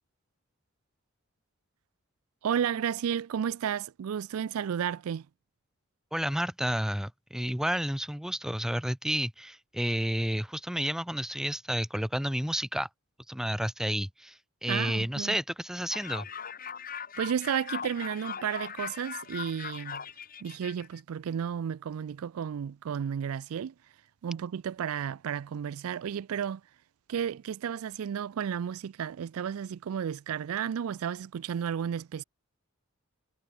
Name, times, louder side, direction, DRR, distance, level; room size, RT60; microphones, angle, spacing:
voice 1, 2.4-5.3 14.7-15.4 17.2-20.0 20.4-23.7 24.2-26.6 27.1-32.2, right 8 dB, 85° right, 0.4 m, -32 dB
voice 2, 6.1-12.9 13.3-16.3, equal, ahead, 0.6 m, -31 dB
sound 1, 15.9-21.0, left 7 dB, 40° left, 2.9 m, -40 dB
head